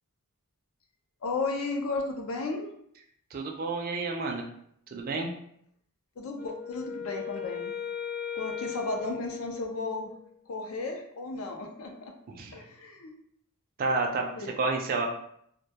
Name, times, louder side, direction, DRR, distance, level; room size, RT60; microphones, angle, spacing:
voice 1, 1.2-2.7 6.2-7.7 8.4-10.1 10.5-12.1 12.5-13.1 14.4-14.5, left 3 dB, 70° left, 3 dB, 0.4 m, -34 dB
voice 2, 3.3-4.4 4.9-5.3 12.4-12.6 13.8-14.3 14.6-15.1, right 3 dB, 40° right, 2 dB, 0.4 m, -30 dB
Wind instrument woodwind instrument, 6.3-10.2, left 8 dB, 35° left, 0.8 m, -37 dB
2.2 x 2.2 x 2.7 m, 0.69 s
head